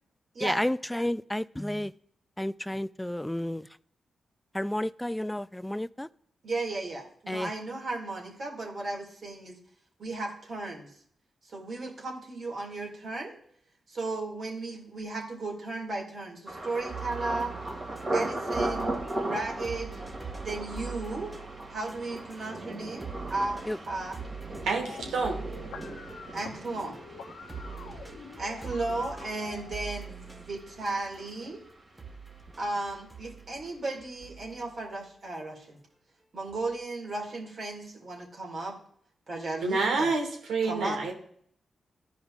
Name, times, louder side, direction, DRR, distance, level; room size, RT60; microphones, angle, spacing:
voice 1, 0.4-1.9 2.4-3.7 4.5-6.1 7.3-7.5 23.7-23.8, left 1 dB, 10° left, 0.3 m, -31 dB
voice 2, 6.4-9.6 10.0-10.9 11.4-13.4 13.9-17.5 18.1-19.0 19.2-20.0 20.4-21.3 21.7-24.2 26.3-27.0 28.3-31.6 32.6-35.8 36.3-38.8 39.3-40.1 40.6-41.0, right 2 dB, 60° right, 2.2 m, -35 dB
Thunder, 16.5-32.2 32.5-33.1 33.5-33.8, right 2 dB, 40° right, 2.0 m, -38 dB
sound 1, 16.9-22.8 23.0-31.6 32.0-35.1 36.5-36.8, right 5 dB, 20° right, 1.3 m, -44 dB
voice 3, 24.6-25.4 39.6-41.1, right 3 dB, 85° right, 1.3 m, -28 dB
sound 2, 24.8-29.8, left 6 dB, 85° left, 0.6 m, -47 dB
12.5 x 5.0 x 2.4 m
supercardioid pair, 40°, 0 cm